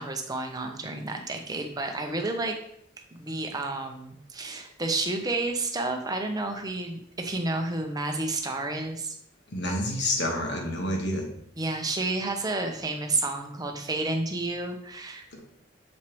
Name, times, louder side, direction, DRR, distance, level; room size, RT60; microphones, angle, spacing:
voice 1, 0.0-2.6 3.1-9.2 11.6-15.4, right 2 dB, 20° right, 3 dB, 0.7 m, -30 dB
voice 2, 9.5-11.3 15.3-15.4, left 1 dB, 60° left, 1 dB, 1.4 m, -28 dB
7.1 x 4.6 x 3.0 m, 0.70 s
head